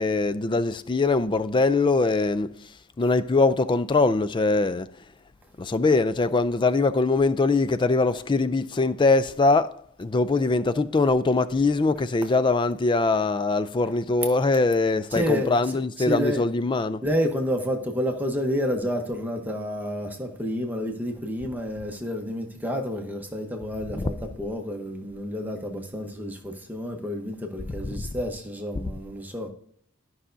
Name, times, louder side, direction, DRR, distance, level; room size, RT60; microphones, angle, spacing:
voice 1, 0.0-2.7 3.0-4.9 5.6-17.0 23.9-24.1 27.8-28.1, left 3 dB, 20° left, 0.3 m, -22 dB
voice 2, 15.1-15.6 16.0-16.4 17.0-29.5, equal, 10° right, 0.9 m, -29 dB
12.5 x 5.6 x 2.6 m
head